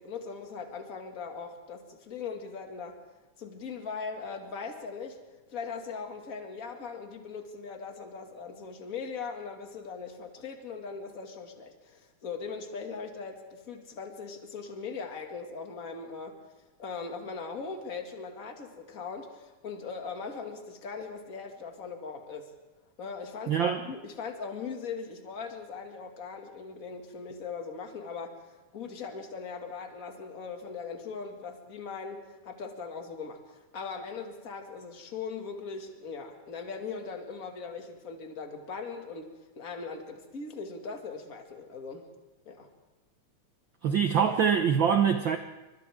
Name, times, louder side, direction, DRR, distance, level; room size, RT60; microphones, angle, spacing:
voice 1, 0.0-3.0 3.4-5.2 5.5-16.4 16.8-22.5 23.0-42.1 42.5-42.7, left 5 dB, 30° left, 3 dB, 2.2 m, -40 dB
voice 2, 23.5-23.8 43.8-45.4, right 7 dB, 90° right, 6 dB, 1.0 m, -24 dB
29.5 x 26.0 x 3.6 m, 1.2 s
omnidirectional pair, 3.5 m